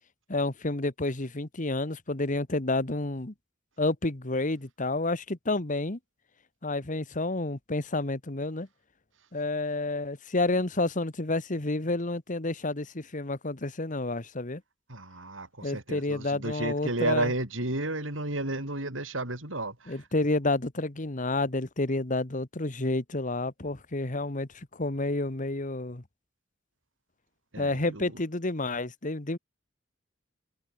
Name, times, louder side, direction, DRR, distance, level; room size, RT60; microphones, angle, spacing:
voice 1, 0.3-3.3 3.8-6.0 6.6-8.7 9.3-14.6 15.6-17.3 19.9-26.0 27.6-29.4, left 2 dB, 40° left, 1.6 m, -30 dB
voice 2, 14.9-20.0 27.5-28.2, right 2 dB, 90° right, 6.0 m, -32 dB
head